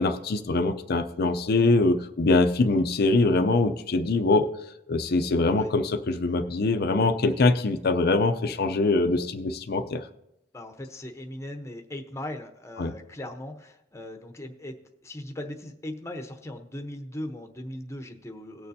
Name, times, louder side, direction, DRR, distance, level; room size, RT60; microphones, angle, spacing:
voice 1, 0.0-4.5 4.9-10.0 12.8-12.9, left 3 dB, 55° left, 7 dB, 0.6 m, -23 dB
voice 2, 10.5-14.8 15.0-18.7, left 1 dB, 15° left, 4 dB, 0.9 m, -38 dB
18.5 x 6.7 x 2.7 m, 0.85 s
head